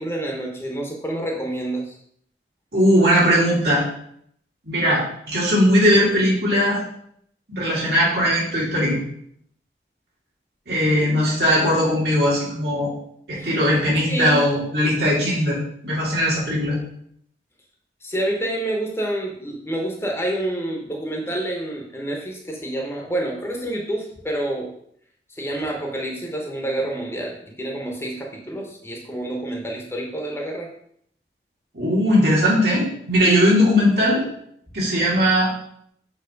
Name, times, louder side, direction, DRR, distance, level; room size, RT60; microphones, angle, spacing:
voice 1, 0.0-2.0 13.3-13.5 14.1-14.4 18.0-24.7 25.3-30.7, right 1 dB, 15° left, 0 dB, 0.9 m, -28 dB
voice 2, 2.7-3.8 4.6-6.8 7.5-9.0 10.7-12.9 13.3-15.6 15.8-16.8 31.7-34.2 34.7-35.5, equal, 70° right, -6 dB, 2.6 m, -19 dB
6.8 x 3.0 x 5.2 m, 0.68 s
head